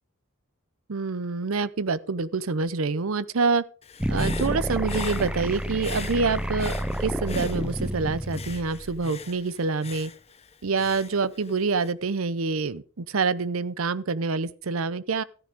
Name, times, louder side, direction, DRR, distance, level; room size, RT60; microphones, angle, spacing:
voice 1, 0.9-3.6 4.1-10.1 10.6-15.2, right 4 dB, 80° right, 0.7 m, -26 dB
Human voice / Breathing, 3.8-8.0 8.3-11.9, left 6 dB, 30° left, 0.7 m, -42 dB
sound 1, 4.0-9.1, right 1 dB, 5° right, 0.6 m, -29 dB
14.0 x 9.8 x 3.6 m
head